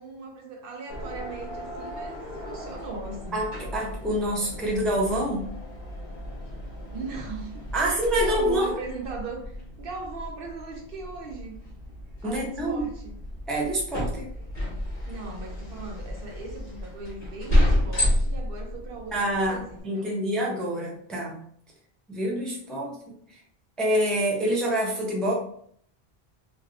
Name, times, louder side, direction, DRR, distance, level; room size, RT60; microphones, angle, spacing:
voice 1, 0.0-3.5 6.9-11.6 12.2-13.2 15.0-20.1, right 3 dB, 65° right, 1 dB, 0.8 m, -39 dB
sound 1, 0.9-19.8, left 1 dB, 40° left, 1.0 m, -31 dB
voice 2, 3.3-5.5 7.7-8.7 12.2-12.8 13.5-14.3 19.1-21.4 22.1-23.0 23.8-25.3, right 1 dB, ahead, -3 dB, 0.5 m, -26 dB
3.2 x 2.5 x 2.4 m, 0.63 s
omnidirectional pair, 1.1 m